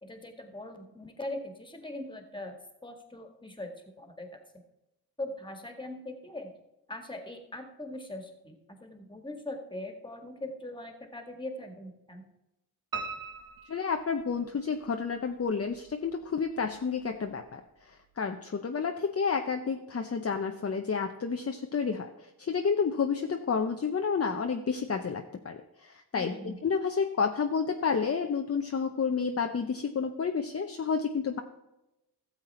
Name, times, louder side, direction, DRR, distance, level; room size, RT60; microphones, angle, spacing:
voice 1, 0.0-2.6 2.8-3.7 4.0-4.3 5.2-6.5 6.9-8.6 8.8-12.3 26.1-26.6, left 1 dB, 10° left, 5 dB, 2.0 m, -41 dB
Piano, 12.9-14.8 15.3-16.1 16.5-16.6 17.0-17.1 17.4-17.5, right 4 dB, 55° right, 1.7 m, -40 dB
voice 2, 13.7-31.4, left 5 dB, 35° left, 5 dB, 0.8 m, -30 dB
13.0 x 7.5 x 4.3 m, 0.92 s
cardioid pair, 70°, 39 cm